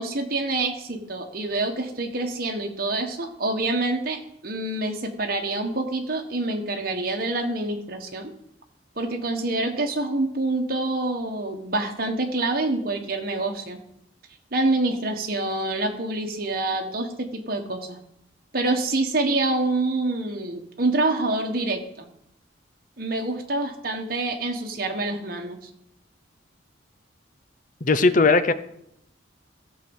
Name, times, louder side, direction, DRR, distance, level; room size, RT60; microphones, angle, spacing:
voice 1, 0.0-8.3 9.0-13.8 14.5-18.0 18.5-22.1 23.0-25.6, right 2 dB, 50° right, 3 dB, 1.5 m, -26 dB
voice 2, 27.8-28.5, left 3 dB, 45° left, 12 dB, 0.7 m, -18 dB
14.0 x 5.0 x 7.2 m, 0.76 s
head